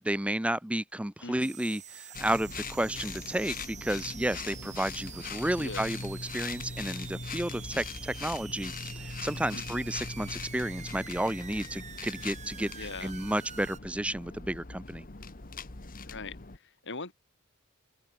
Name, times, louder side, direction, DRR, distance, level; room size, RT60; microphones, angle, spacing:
voice 1, 0.0-15.1, right 1 dB, 5° right, 0.8 m, -32 dB
voice 2, 1.2-1.5 5.6-5.9 9.5-9.8 12.7-13.1 16.0-17.1, left 3 dB, 60° left, 3.6 m, -41 dB
sound 1, 1.4-13.8, right 8 dB, 35° right, 2.7 m, -47 dB
sound 2, 2.1-16.6, left 4 dB, 40° left, 1.5 m, -41 dB
open air
head